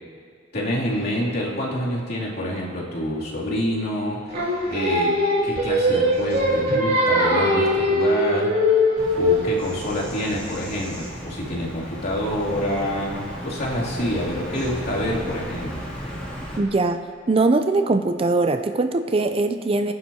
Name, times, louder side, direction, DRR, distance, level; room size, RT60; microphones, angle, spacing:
voice 1, 0.5-8.5 9.1-15.9, equal, 55° left, -6 dB, 2.8 m, -27 dB
Singing, 4.3-9.5, left 1 dB, 50° right, 2.6 m, -20 dB
Bird vocalization bird call bird song, 9.0-16.6, equal, 5° left, 2.6 m, -35 dB
voice 2, 16.6-19.9, right 3 dB, 30° right, 8 dB, 0.4 m, -21 dB
23.0 x 10.5 x 2.8 m, 2.2 s
head